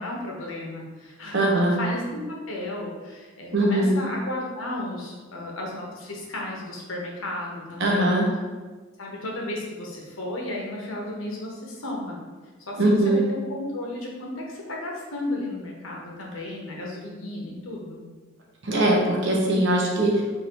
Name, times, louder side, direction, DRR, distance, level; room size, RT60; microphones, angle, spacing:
voice 1, 0.0-1.4 1.8-8.2 9.0-12.2 12.7-18.0, left 1 dB, 75° left, -2 dB, 1.0 m, -34 dB
voice 2, 1.3-1.8 3.5-3.9 7.8-8.2 12.8-13.2 18.6-20.2, right 1 dB, 60° right, -2 dB, 0.9 m, -21 dB
3.7 x 2.7 x 4.5 m, 1.3 s
head